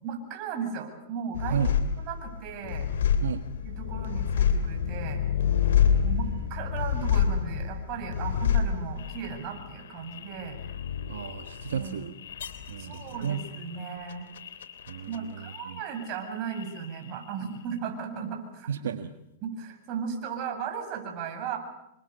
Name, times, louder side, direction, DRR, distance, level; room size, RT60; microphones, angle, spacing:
voice 1, 0.0-1.6 2.0-2.9 3.6-5.2 6.0-10.6 11.7-12.0 12.8-14.3 15.1-18.7 19.4-21.6, right 7 dB, 45° right, 3 dB, 7.9 m, -36 dB
sound 1, 1.3-16.2 16.5-17.3, left 7 dB, 80° left, 3.0 m, -29 dB
voice 2, 5.8-6.4 11.1-12.2 12.7-13.4 13.7-13.8 14.9-15.8 18.7-19.1, right 8 dB, 85° right, 9 dB, 1.6 m, -33 dB
28.5 x 25.0 x 6.9 m, 0.84 s
hypercardioid pair, 125°, 0 cm